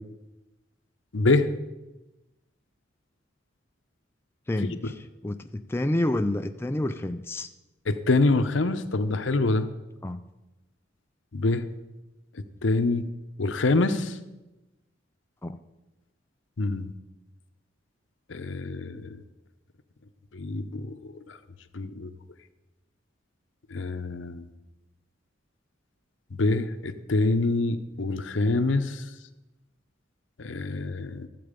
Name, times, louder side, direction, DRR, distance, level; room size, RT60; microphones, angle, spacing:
voice 1, 1.1-1.5 4.8-4.9 7.9-9.7 11.3-11.7 12.6-13.1 13.4-14.2 16.6-16.9 18.3-19.2 20.3-21.4 21.7-22.1 23.7-24.5 26.3-29.0 30.4-31.3, left 2 dB, 75° left, 10 dB, 0.7 m, -25 dB
voice 2, 4.5-7.5 10.0-10.2 15.4-15.6, left 1 dB, 10° left, 7 dB, 0.3 m, -29 dB
13.0 x 7.7 x 5.1 m, 1.0 s
head